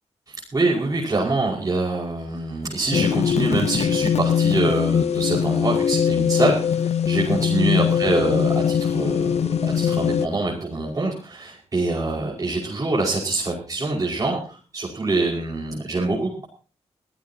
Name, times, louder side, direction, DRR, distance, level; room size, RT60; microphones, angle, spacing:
voice 1, 0.3-16.5, right 2 dB, 30° right, -3 dB, 5.3 m, -25 dB
sound 1, 2.9-10.3, left 8 dB, 75° left, 0.7 m, -21 dB
23.0 x 15.5 x 2.9 m, 0.36 s
wide cardioid pair, 120°, 11 cm